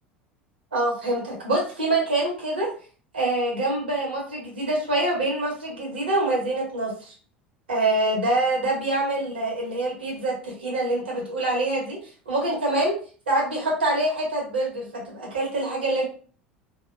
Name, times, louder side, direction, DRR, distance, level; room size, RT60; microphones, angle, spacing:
voice 1, 0.7-2.7 3.1-7.1 7.7-12.0 12.3-12.9 13.3-16.1, right 2 dB, 75° right, -1 dB, 1.0 m, -25 dB
2.8 x 2.0 x 2.5 m, 0.40 s
figure-of-eight pair, 75°, 6 cm